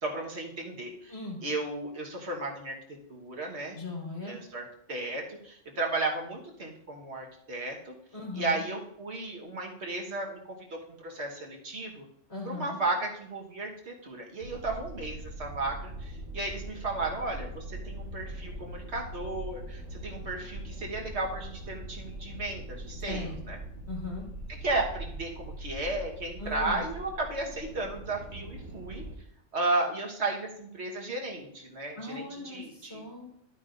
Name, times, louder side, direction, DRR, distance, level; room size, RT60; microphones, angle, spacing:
voice 1, 0.0-1.1 1.4-2.8 3.1-3.8 4.3-8.0 8.3-12.0 12.4-23.6 24.6-29.0 29.5-33.0, right 2 dB, 60° right, 0 dB, 1.7 m, -34 dB
voice 2, 3.7-4.4 8.1-8.6 12.3-12.8 23.1-23.4 23.9-24.3 26.4-26.8 31.9-33.2, left 2 dB, 55° left, -5 dB, 4.1 m, -38 dB
sound 1, 14.4-29.2, right 1 dB, 80° right, 3.6 m, -41 dB
11.0 x 8.8 x 2.6 m, 0.73 s
omnidirectional pair, 1.3 m